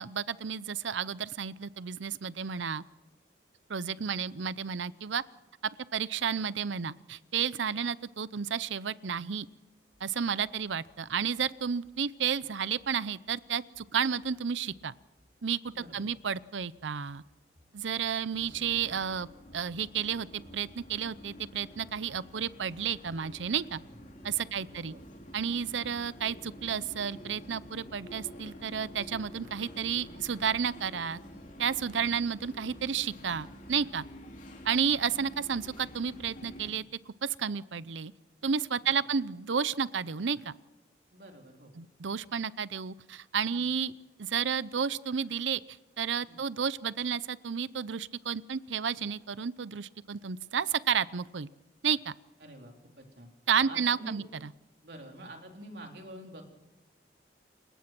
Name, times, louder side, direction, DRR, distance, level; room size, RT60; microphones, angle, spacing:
voice 1, 0.0-2.8 3.7-5.2 5.9-9.5 10.0-14.9 15.4-15.6 15.9-17.2 17.7-19.3 19.5-23.8 24.2-24.9 25.3-31.2 31.6-34.0 34.6-38.1 38.4-40.5 41.8-43.9 44.2-45.6 46.0-51.5 51.8-52.1 53.5-54.2, right 7 dB, 90° right, 18 dB, 0.6 m, -31 dB
sound 1, 9.9-10.5 10.9-11.5 11.8-12.5 12.8-13.5 13.7-14.4 14.7-15.4 15.6-16.3 16.6-17.3 17.5-18.2 18.5-19.2 19.5-20.1 20.4-21.1 21.4-22.0 22.3-22.4 22.8-23.4 23.7-23.9 24.2-24.7, equal, 30° right, 4.4 m, -62 dB
voice 2, 15.7-16.1 24.5-25.0 34.8-34.9 38.8-38.9 41.1-41.7 43.5-43.7 46.3-46.4 52.4-53.3 53.6-54.2 54.8-56.5, right 1 dB, 60° right, 2 dB, 3.9 m, -47 dB
sound 2, 18.3-36.7, equal, 45° left, 3.0 m, -49 dB
29.0 x 17.5 x 6.1 m, 1.0 s
head